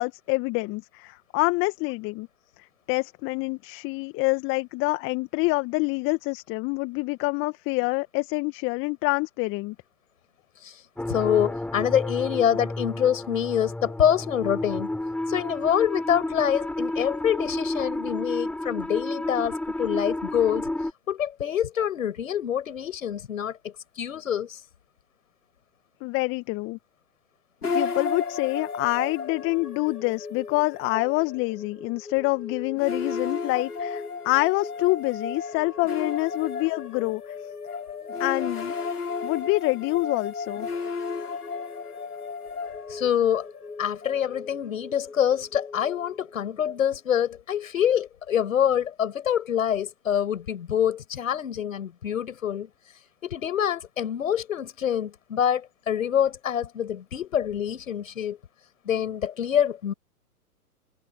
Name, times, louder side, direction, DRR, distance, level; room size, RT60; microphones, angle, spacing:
voice 1, 0.0-2.3 2.6-9.8 26.0-26.8 27.7-37.2 38.2-38.7 39.2-40.7, left 25 dB, 25° left, 1.9 m, -26 dB
sound 1, 11.0-20.9, left 1 dB, 5° left, 7.6 m, -31 dB
voice 2, 11.1-14.9 15.3-20.7 21.1-24.6 42.9-43.5 43.8-52.7 53.2-58.4 58.8-59.9, left 9 dB, 60° left, 6.4 m, -26 dB
sound 2, 27.6-46.7, left 5 dB, 80° left, 6.3 m, -34 dB
figure-of-eight pair, 120°, 45 cm